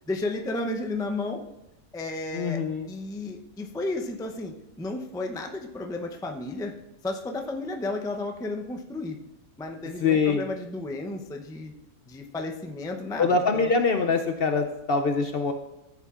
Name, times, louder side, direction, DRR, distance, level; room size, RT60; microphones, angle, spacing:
voice 1, 0.1-1.4 1.9-6.7 7.0-9.2 9.6-11.7 12.1-13.7, left 2 dB, 5° left, 3 dB, 0.4 m, -33 dB
voice 2, 2.3-2.9 10.0-10.5 13.2-15.5, left 4 dB, 55° left, 6 dB, 0.7 m, -24 dB
15.0 x 8.5 x 2.5 m, 0.91 s
omnidirectional pair, 1.5 m